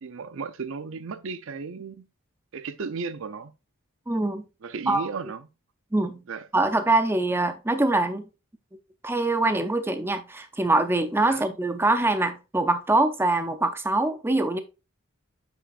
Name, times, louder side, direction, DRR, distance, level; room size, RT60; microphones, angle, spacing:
voice 1, 0.0-2.1 2.5-3.5 4.6-5.5 6.3-6.5 11.3-11.4, right 5 dB, 60° right, 0.5 m, -35 dB
voice 2, 4.1-4.5 4.9-5.0 5.9-6.2 6.5-8.2 9.0-14.6, right 2 dB, 10° right, 0.5 m, -24 dB
8.3 x 6.2 x 2.4 m
head